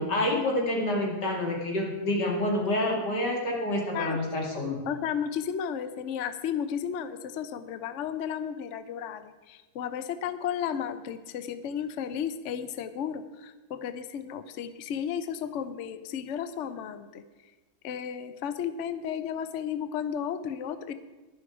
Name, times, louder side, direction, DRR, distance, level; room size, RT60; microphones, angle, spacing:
voice 1, 0.0-4.8, left 1 dB, 55° left, -1 dB, 2.9 m, -28 dB
voice 2, 4.7-17.2 17.8-20.9, left 8 dB, 85° left, 12 dB, 0.6 m, -33 dB
11.5 x 11.0 x 4.9 m, 1.2 s
omnidirectional pair, 2.2 m